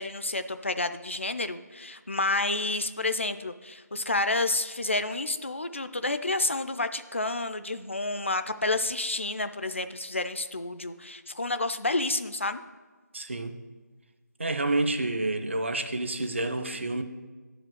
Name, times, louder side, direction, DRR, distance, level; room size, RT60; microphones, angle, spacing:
voice 1, 0.0-12.6, left 2 dB, 45° left, 11 dB, 0.3 m, -30 dB
voice 2, 13.1-13.6 14.4-17.0, right 2 dB, 40° right, 8 dB, 0.6 m, -29 dB
9.2 x 5.0 x 7.6 m, 1.4 s
figure-of-eight pair, 175°, 10 cm